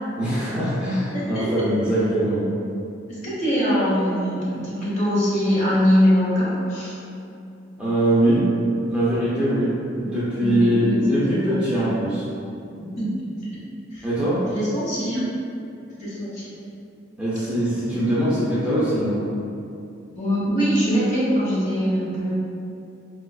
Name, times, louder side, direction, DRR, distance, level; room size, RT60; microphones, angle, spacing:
voice 1, 0.2-2.5 7.8-8.5 8.9-12.3 14.0-14.5 17.2-19.2, right 1 dB, 5° right, -10 dB, 0.5 m, -22 dB
voice 2, 1.1-1.7 3.1-7.0 10.4-11.0 11.3-11.6 12.8-13.1 13.5-13.6 13.9-14.1 14.5-15.3 15.9-16.5 20.1-22.3, equal, 40° left, -9 dB, 1.1 m, -23 dB
4.8 x 2.3 x 2.3 m, 2.6 s
head